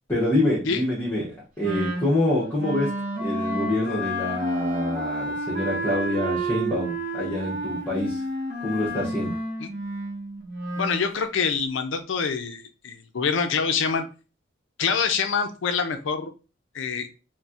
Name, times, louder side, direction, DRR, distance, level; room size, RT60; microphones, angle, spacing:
voice 1, 0.1-2.9 3.2-8.2 8.6-9.4, left 1 dB, 15° left, -8 dB, 0.8 m, -26 dB
Wind instrument woodwind instrument, 1.6-11.1, right 1 dB, 45° right, 0.7 m, -30 dB
voice 2, 10.8-14.0 14.8-16.3 16.7-17.1, left 6 dB, 75° left, 8 dB, 0.4 m, -25 dB
4.1 x 2.1 x 2.4 m, 0.34 s
head